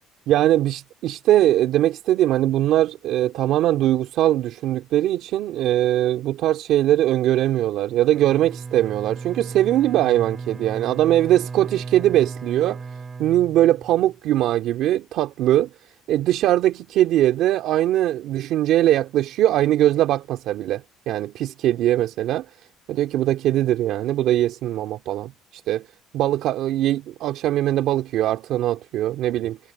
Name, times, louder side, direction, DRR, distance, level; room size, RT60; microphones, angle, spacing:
voice 1, 0.3-12.8 13.2-15.7 16.1-22.4 22.9-25.9 26.1-29.6, right 13 dB, 60° right, 2.7 m, -21 dB
Bowed string instrument, 8.1-14.2, right 4 dB, 20° right, 6.6 m, -35 dB
cardioid pair, 145°, 0 cm